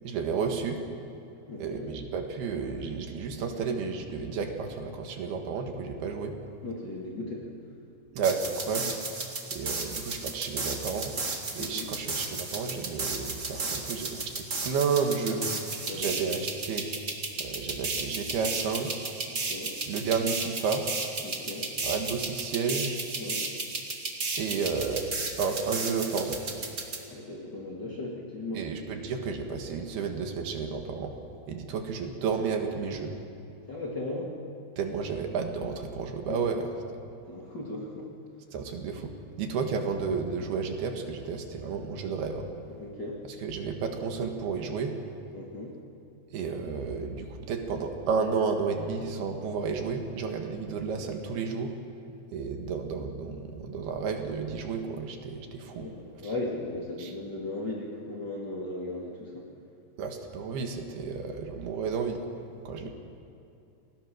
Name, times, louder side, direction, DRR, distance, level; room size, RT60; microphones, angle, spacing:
voice 1, 0.0-0.8 1.6-6.4 8.1-9.0 9.5-11.2 11.5-15.4 15.9-16.9 17.4-19.1 19.9-20.9 21.8-23.0 24.4-26.4 28.5-31.2 31.5-33.2 34.8-36.7 38.5-42.5 43.4-45.0 46.3-51.7 52.3-55.9 56.2-56.3 57.0-57.1 60.0-62.2 62.7-62.9, right 5 dB, 70° right, 4 dB, 3.5 m, -32 dB
voice 2, 1.5-1.9 6.6-7.5 11.6-11.9 15.8-16.3 19.3-19.7 21.2-21.7 23.2-23.5 27.1-28.6 33.7-34.3 36.3-36.5 37.1-38.1 42.7-43.2 45.3-45.7 55.7-59.5 62.8-62.9, left 2 dB, 30° left, -3 dB, 2.3 m, -37 dB
sound 1, 8.2-27.0, right 3 dB, 35° right, 1.2 m, -34 dB
29.0 x 19.0 x 6.4 m, 2.7 s
omnidirectional pair, 4.8 m